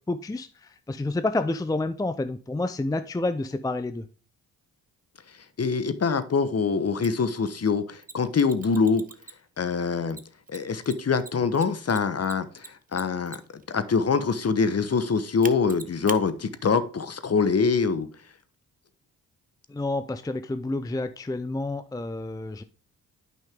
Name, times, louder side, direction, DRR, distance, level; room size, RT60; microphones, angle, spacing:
voice 1, 0.1-4.0 19.7-22.6, left 2 dB, 10° left, 0.6 m, -29 dB
voice 2, 5.6-9.0 9.6-10.2 10.5-18.1, left 5 dB, 35° left, 1.1 m, -24 dB
Mechanisms, 7.0-7.1 8.0-9.6 10.1-13.6 15.4-16.2, right 4 dB, 20° right, 0.9 m, -41 dB
9.0 x 5.6 x 3.6 m
hypercardioid pair, 45°, 41 cm